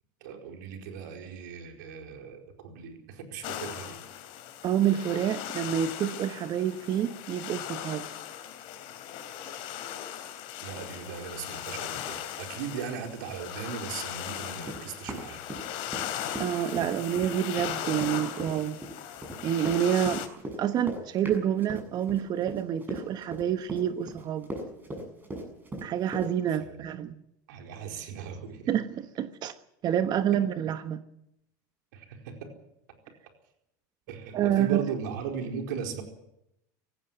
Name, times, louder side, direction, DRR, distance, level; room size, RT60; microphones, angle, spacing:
voice 1, 0.2-4.0 10.6-15.5 26.7-26.8 27.5-28.7 31.9-32.5 34.1-36.0, right 6 dB, 80° right, 4.6 m, -38 dB
sound 1, 3.4-20.3, left 10 dB, 60° left, 3.3 m, -38 dB
voice 2, 4.6-8.1 16.4-18.8 19.4-20.3 20.6-24.5 25.8-27.1 28.7-29.5 29.8-31.0 34.3-34.8, right 10 dB, 45° right, 1.1 m, -28 dB
Run, 14.6-16.1 16.3-26.3, right 1 dB, 20° right, 7.3 m, -38 dB
18.5 x 15.5 x 9.3 m
supercardioid pair, 110°, 10 cm